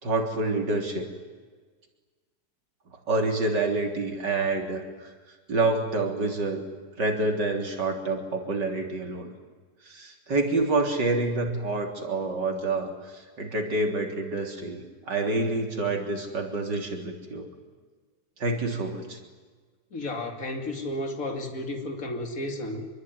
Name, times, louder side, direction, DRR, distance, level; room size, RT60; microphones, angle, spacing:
voice 1, 0.0-1.1 3.1-4.8 5.5-6.6 7.0-9.3 9.9-12.9 13.4-17.5 18.4-19.2, right 2 dB, 80° right, 2 dB, 4.1 m, -27 dB
voice 2, 19.9-22.8, left 1 dB, 50° left, 3 dB, 3.1 m, -32 dB
25.5 x 22.5 x 9.6 m, 1.4 s
omnidirectional pair, 1.8 m